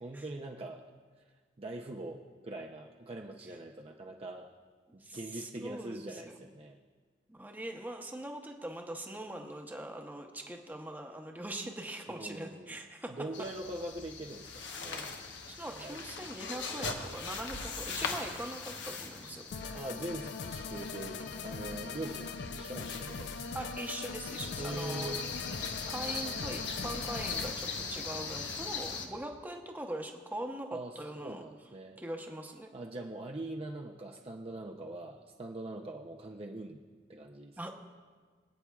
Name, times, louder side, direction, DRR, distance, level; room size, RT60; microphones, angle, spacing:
voice 1, 0.0-0.9 1.6-4.5 4.9-6.8 12.1-12.8 13.1-15.2 15.7-16.0 19.7-23.4 24.6-25.2 30.7-32.0 32.7-36.8 37.1-37.6, right 2 dB, 35° right, 1 dB, 0.6 m, -42 dB
voice 2, 4.9-6.4 7.3-13.1 15.5-19.4 23.5-25.2 25.9-31.4 32.0-32.7 37.6-37.7, right 1 dB, 10° right, 3 dB, 0.8 m, -42 dB
sound 1, 13.3-29.1, left 4 dB, 90° left, 1.1 m, -41 dB
sound 2, 19.5-27.5, left 5 dB, 65° left, 0.5 m, -41 dB
25.0 x 8.6 x 2.3 m, 1.5 s
head